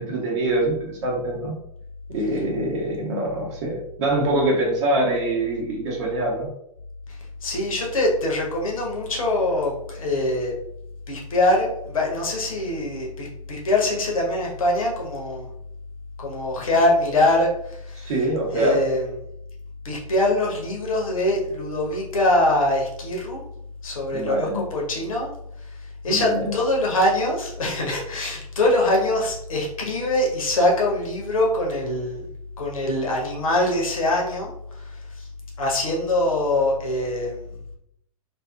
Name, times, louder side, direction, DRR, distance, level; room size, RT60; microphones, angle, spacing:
voice 1, 0.0-1.5 2.1-6.5 18.0-18.8 24.1-24.6 26.1-26.4, right 1 dB, 50° right, -2 dB, 1.0 m, -24 dB
voice 2, 7.4-10.5 11.1-15.5 16.2-18.1 18.5-19.1 19.8-23.4 23.8-25.3 26.0-32.3 32.6-34.5 34.8-34.9 35.2-35.3 35.6-37.4, left 1 dB, 65° left, -2 dB, 0.9 m, -23 dB
2.6 x 2.6 x 2.3 m, 0.74 s
figure-of-eight pair, 100°, 19 cm